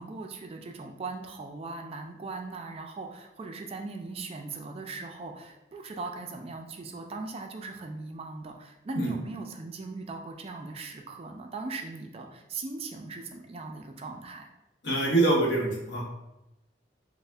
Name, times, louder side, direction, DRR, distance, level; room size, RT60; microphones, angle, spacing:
voice 1, 0.0-14.5, right 3 dB, 35° right, 3 dB, 0.3 m, -39 dB
voice 2, 14.8-16.0, right 2 dB, 75° left, -2 dB, 0.8 m, -24 dB
3.6 x 2.0 x 3.2 m, 0.92 s
head